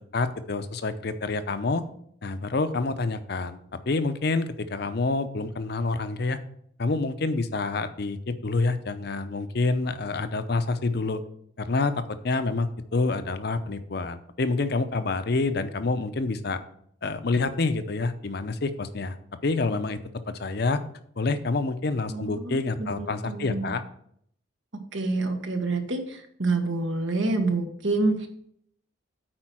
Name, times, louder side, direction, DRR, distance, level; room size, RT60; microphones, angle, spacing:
voice 1, 0.1-1.8 2.2-3.6 3.9-6.4 6.8-11.2 11.6-16.6 17.0-19.2 19.4-20.0 20.4-20.8 21.2-23.8, left 3 dB, 55° left, 11 dB, 0.6 m, -27 dB
voice 2, 22.1-23.7 24.9-28.3, right 3 dB, 80° right, 5 dB, 1.4 m, -27 dB
8.7 x 4.5 x 6.1 m, 0.68 s
head